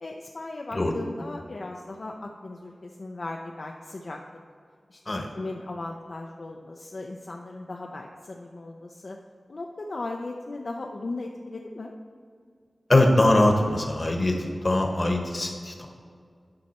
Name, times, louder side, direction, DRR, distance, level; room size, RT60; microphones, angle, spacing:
voice 1, 0.0-4.2 4.9-9.2 9.5-11.9, left 2 dB, 55° left, 1 dB, 0.5 m, -37 dB
voice 2, 12.9-14.4 14.6-15.9, left 1 dB, 40° left, 2 dB, 1.1 m, -22 dB
10.5 x 5.6 x 4.2 m, 2.2 s
wide cardioid pair, 95°, 0 cm